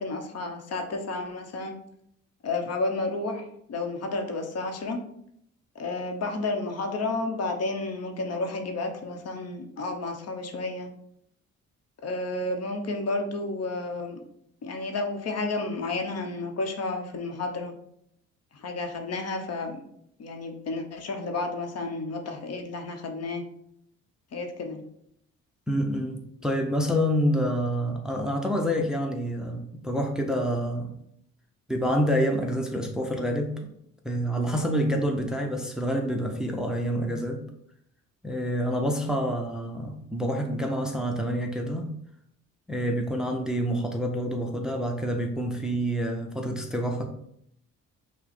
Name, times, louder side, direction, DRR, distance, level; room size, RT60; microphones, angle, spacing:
voice 1, 0.0-1.8 2.4-5.0 5.7-10.9 12.0-14.2 14.6-17.7 18.5-19.8 20.2-23.4 24.3-24.8, left 3 dB, 55° left, 4 dB, 0.9 m, -31 dB
voice 2, 25.7-30.9 31.7-33.7 34.0-37.5 38.2-42.0 42.7-47.1, equal, ahead, 2 dB, 0.6 m, -27 dB
5.7 x 2.2 x 4.2 m, 0.73 s
cardioid pair, 90°, 30 cm